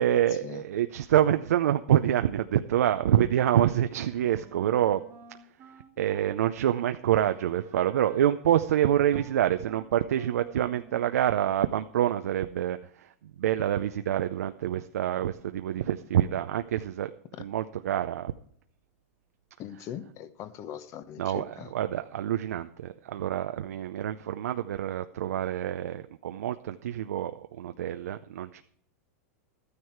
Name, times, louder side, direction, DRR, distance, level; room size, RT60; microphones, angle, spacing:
voice 1, 0.0-5.0 6.0-17.1 17.4-18.3 21.2-28.6, right 11 dB, 85° right, 8 dB, 0.6 m, -26 dB
Wind instrument woodwind instrument, 4.1-11.6, right 5 dB, 25° right, 1.3 m, -53 dB
voice 2, 19.6-21.7, left 10 dB, 40° left, 12 dB, 1.0 m, -41 dB
13.0 x 9.7 x 4.6 m, 0.66 s
supercardioid pair, 130°, 8 cm